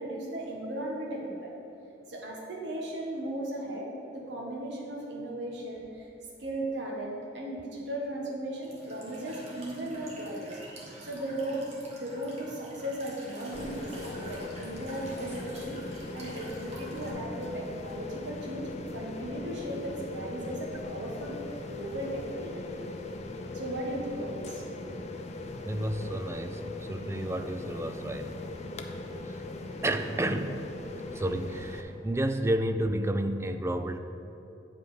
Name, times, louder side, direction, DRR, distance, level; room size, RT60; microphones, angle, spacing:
voice 1, 0.0-1.5 2.1-6.1 6.4-10.6 11.0-11.7 11.9-15.8 16.1-21.4 21.6-22.6 23.5-24.6, right 1 dB, 75° right, -2 dB, 1.2 m, -36 dB
Walk footsteps / Chirp tweet / Stream, 8.6-17.1, right 1 dB, 40° right, 1.6 m, -47 dB
sound 1, 13.5-31.8, left 2 dB, 40° left, 0.5 m, -39 dB
voice 2, 25.6-28.4 29.3-29.4 29.8-30.7 30.9-34.0, right 1 dB, 15° right, 9 dB, 0.3 m, -31 dB
9.1 x 5.4 x 4.9 m, 2.9 s
head